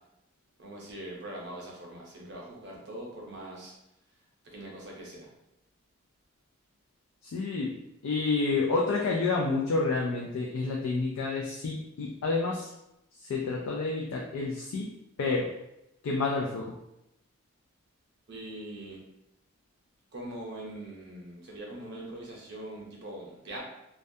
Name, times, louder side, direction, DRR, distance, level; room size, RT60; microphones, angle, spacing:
voice 1, 0.6-3.7 4.5-5.3 18.3-19.0 20.1-23.6, right 1 dB, 50° right, -2 dB, 0.6 m, -42 dB
voice 2, 7.2-7.7 8.0-12.7 13.2-14.9 15.2-15.5 16.0-16.8, left 3 dB, 90° left, -1 dB, 0.3 m, -29 dB
2.3 x 2.1 x 2.6 m, 0.86 s
head